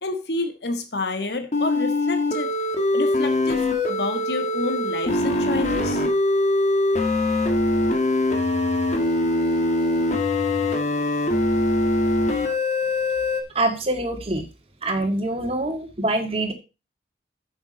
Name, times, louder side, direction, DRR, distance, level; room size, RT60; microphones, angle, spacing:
voice 1, 0.0-2.5 2.9-6.0, left 2 dB, 65° left, 6 dB, 1.4 m, -29 dB
sound 1, 1.5-13.4, left 2 dB, 40° left, 1.7 m, -22 dB
voice 2, 13.5-14.5 14.8-16.5, right 2 dB, 35° right, 5 dB, 1.9 m, -25 dB
8.9 x 7.1 x 5.1 m, 0.29 s
head